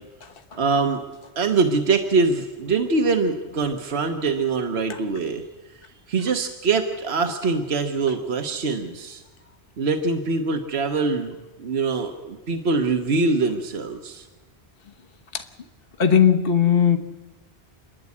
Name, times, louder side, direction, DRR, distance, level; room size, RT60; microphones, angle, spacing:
voice 1, 0.5-1.0 1.4-5.4 6.1-9.2 9.8-14.2, right 4 dB, 75° right, 5 dB, 1.5 m, -23 dB
voice 2, 16.0-17.0, left 8 dB, 60° left, 6 dB, 1.4 m, -17 dB
29.0 x 11.0 x 8.5 m, 1.2 s
omnidirectional pair, 1.1 m